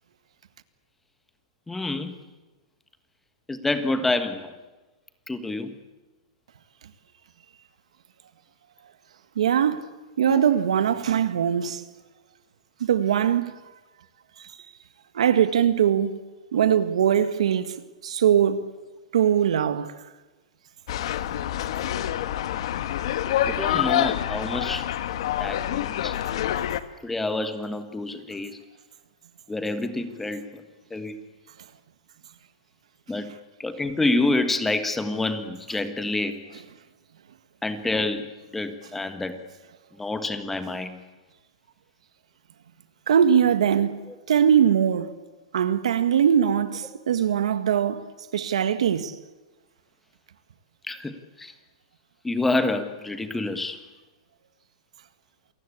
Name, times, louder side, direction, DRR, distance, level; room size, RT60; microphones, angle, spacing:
voice 1, 1.7-2.1 3.5-4.5 5.3-5.7 10.3-10.4 23.5-24.9 25.4-26.2 27.0-28.6 29.5-30.6 30.9-31.2 33.1-33.3 33.6-36.6 37.6-39.4 40.0-41.0 44.1-44.2 50.9-51.5 52.2-53.8, left 2 dB, 5° left, 1.5 m, -28 dB
voice 2, 9.4-9.8 10.2-11.8 12.8-13.5 15.1-16.2 16.5-17.7 18.0-18.7 19.1-19.9 43.1-44.0 44.3-45.2 45.5-48.0 48.3-49.1, right 9 dB, 85° right, 1.9 m, -21 dB
sound 1, 20.9-26.8, left 11 dB, 60° left, 1.5 m, -27 dB
28.0 x 18.5 x 8.5 m
supercardioid pair, 160°, 3 cm